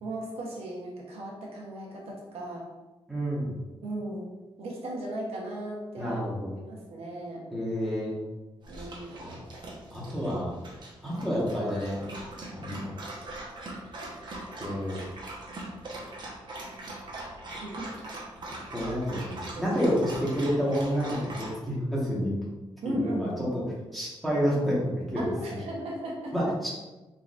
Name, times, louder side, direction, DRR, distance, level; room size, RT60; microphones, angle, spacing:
voice 1, 0.0-2.7 3.8-4.3 4.6-6.2 6.5-7.5 8.7-9.3 17.6-17.9 19.2-19.7 22.8-23.3 25.1-26.4, right 1 dB, 75° right, -3 dB, 1.1 m, -36 dB
voice 2, 3.1-3.5 6.0-6.5 7.5-8.2 9.2-9.4 9.9-10.5 11.0-12.0 12.5-12.9 14.6-15.0 18.7-22.3 22.8-23.6 23.9-24.8 25.1-25.2 26.3-26.7, equal, ahead, -7 dB, 1.4 m, -29 dB
Dog, 8.6-21.5, right 2 dB, 45° right, 1.1 m, -41 dB
4.7 x 3.9 x 2.5 m, 1.1 s
wide cardioid pair, 150°, 10 cm